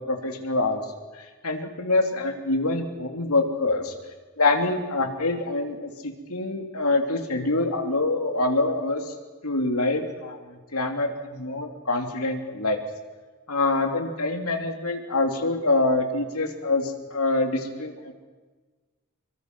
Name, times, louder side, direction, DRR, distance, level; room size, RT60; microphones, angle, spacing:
voice 1, 0.1-0.8 1.2-3.9 4.4-9.1 9.4-12.8 13.5-18.1, left 2 dB, 85° left, 4 dB, 3.0 m, -25 dB
26.0 x 23.0 x 6.1 m, 1.4 s
head